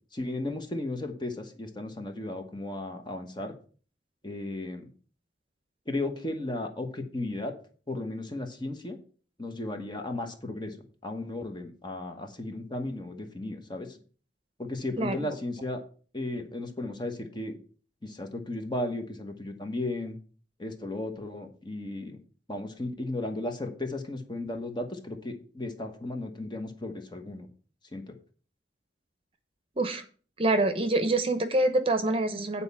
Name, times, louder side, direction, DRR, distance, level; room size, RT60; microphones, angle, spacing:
voice 1, 0.1-3.5 4.2-4.9 5.9-7.5 7.9-9.0 9.4-14.0 14.6-15.8 16.1-17.6 18.0-20.2 20.6-22.2 22.5-27.5 27.9-28.1, left 2 dB, 25° left, 5 dB, 1.2 m, -35 dB
voice 2, 15.0-15.3 29.8-30.0 30.4-32.6, right 2 dB, 30° right, 8 dB, 0.9 m, -26 dB
9.0 x 4.2 x 7.1 m, 0.41 s
head